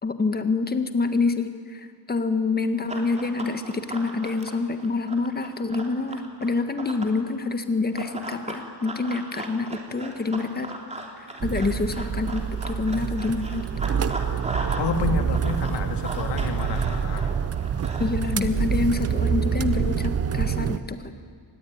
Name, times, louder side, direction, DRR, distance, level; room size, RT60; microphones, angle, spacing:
voice 1, 0.0-10.7 11.2-13.7 18.0-21.0, left 3 dB, 25° left, 9 dB, 1.7 m, -27 dB
Run, 2.9-7.2 7.9-14.9 15.2-18.3, right 2 dB, 15° right, 3.2 m, -37 dB
sound 1, 11.4-20.8, right 7 dB, 35° right, 0.8 m, -26 dB
voice 2, 14.8-17.3, left 6 dB, 85° left, 7 dB, 2.5 m, -29 dB
25.5 x 20.0 x 9.5 m, 2.1 s
wide cardioid pair, 155°, 41 cm